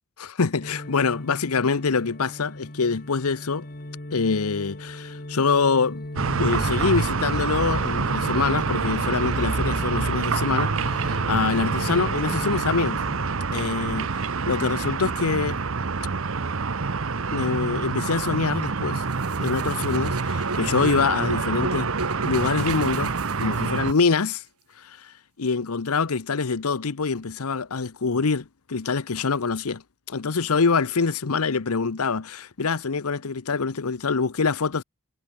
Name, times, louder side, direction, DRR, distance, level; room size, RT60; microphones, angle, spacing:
voice 1, 0.2-3.7 4.1-6.1 6.4-13.0 13.5-15.7 17.3-19.0 19.4-21.9 22.2-23.1 23.4-24.4 24.8-29.8 30.1-34.8, left 4 dB, 80° left, 0.8 m, -25 dB
sound 1, 0.6-13.3, left 1 dB, 40° left, 2.0 m, -39 dB
sound 2, 6.2-23.9, right 4 dB, 65° right, 0.9 m, -26 dB
sound 3, 19.1-24.0, right 2 dB, 90° right, 7.2 m, -35 dB
head